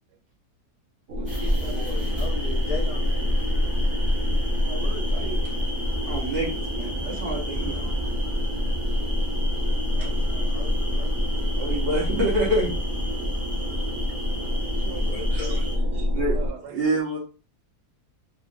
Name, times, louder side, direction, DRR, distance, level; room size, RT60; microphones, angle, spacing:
sound 1, 1.1-16.5, left 1 dB, 65° right, 1.1 m, -26 dB
voice 1, 1.2-1.8 14.3-15.4 16.3-16.9, right 6 dB, 90° right, 6 dB, 1.2 m, -41 dB
sound 2, 1.3-15.8, equal, 10° right, 0.8 m, -33 dB
voice 2, 1.7-3.4 9.9-11.1 14.9-15.9, left 5 dB, 70° left, -3 dB, 1.1 m, -39 dB
voice 3, 4.5-5.4 6.1-8.0 10.0-10.1 11.5-12.7 15.1-15.6 15.9-16.4 16.7-17.2, right 1 dB, 45° right, -5 dB, 0.8 m, -28 dB
3.0 x 2.2 x 2.5 m, 0.35 s
omnidirectional pair, 1.7 m